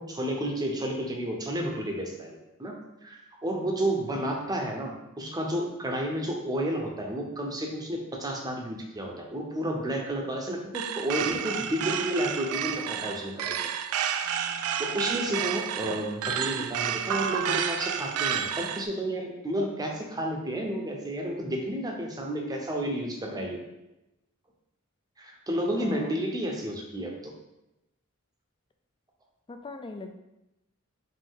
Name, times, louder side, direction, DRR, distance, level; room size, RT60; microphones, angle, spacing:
voice 1, 0.0-2.8 3.0-13.6 14.8-23.6 25.2-27.3, right 1 dB, 20° right, 1 dB, 0.7 m, -31 dB
voice 2, 3.6-4.3 10.3-10.4 12.9-13.2 14.2-14.9 25.8-26.2 29.5-30.1, left 3 dB, 25° left, 6 dB, 0.3 m, -44 dB
sound 1, 10.7-18.9, right 8 dB, 85° right, 0.3 m, -30 dB
5.2 x 2.7 x 3.7 m, 0.93 s
head